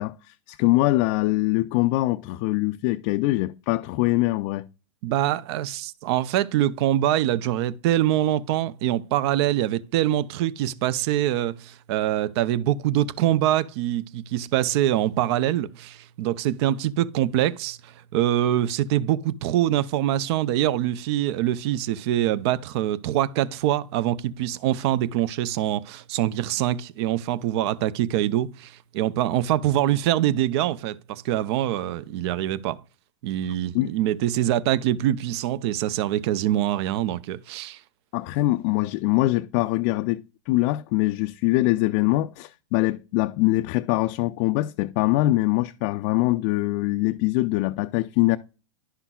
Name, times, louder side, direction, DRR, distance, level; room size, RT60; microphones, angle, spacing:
voice 1, 0.0-4.7 33.7-33.9 38.1-48.4, left 18 dB, 45° left, 0.4 m, -23 dB
voice 2, 5.0-32.8 33.2-37.8, right 12 dB, 55° right, 0.6 m, -24 dB
11.0 x 5.7 x 2.3 m
hypercardioid pair, 125°, 16 cm